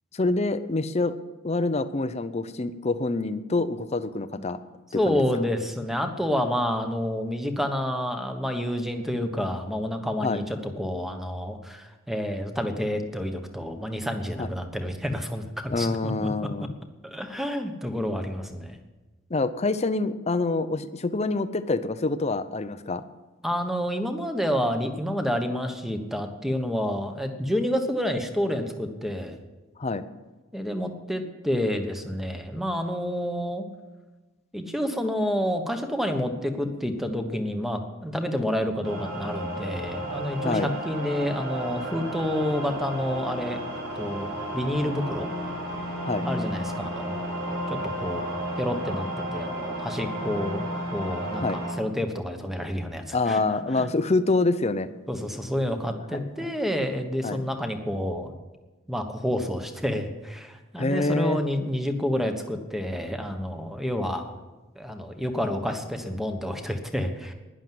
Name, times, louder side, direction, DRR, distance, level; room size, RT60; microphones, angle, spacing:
voice 1, 0.1-1.2 1.4-4.6 4.9-5.2 10.2-10.4 14.4-14.5 15.7-16.7 19.3-23.0 29.8-30.1 40.4-40.7 46.0-46.3 47.5-47.6 51.4-51.6 53.1-54.9 56.1-56.5 57.2-57.4 60.8-61.4, left 3 dB, 30° left, 12 dB, 0.6 m, -26 dB
voice 2, 4.9-16.3 17.0-18.8 23.4-29.4 30.5-33.6 34.5-43.6 43.9-44.3 44.5-45.3 46.2-47.2 47.7-48.2 48.6-50.6 50.9-53.4 53.8-53.9 55.1-58.3 58.9-64.3 64.8-67.3, equal, ahead, 6 dB, 1.1 m, -29 dB
sound 1, 38.8-51.7, right 1 dB, 80° right, 3.4 m, -32 dB
11.5 x 10.5 x 7.8 m, 1.2 s
head